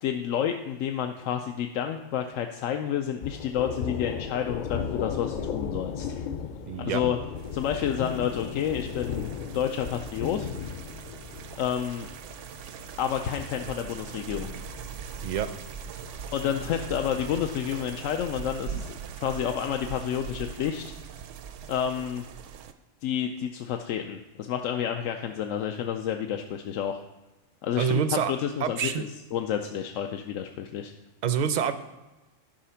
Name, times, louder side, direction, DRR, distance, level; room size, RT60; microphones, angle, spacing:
voice 1, 0.0-6.1 6.8-7.2 7.5-10.5 11.6-12.1 13.0-14.5 16.3-20.9 21.7-22.2 23.0-27.0 27.6-28.0 28.3-30.9, left 9 dB, 90° left, 5 dB, 1.0 m, -30 dB
Thunder, 3.2-18.7, left 7 dB, 65° left, 0.4 m, -37 dB
voice 2, 6.7-7.0 15.2-15.5 27.8-28.3 28.6-29.0 31.2-31.7, right 8 dB, 50° right, 11 dB, 0.5 m, -26 dB
sound 1, 7.4-22.7, right 7 dB, 75° right, 0.9 m, -41 dB
12.0 x 4.9 x 5.7 m, 1.1 s
omnidirectional pair, 1.3 m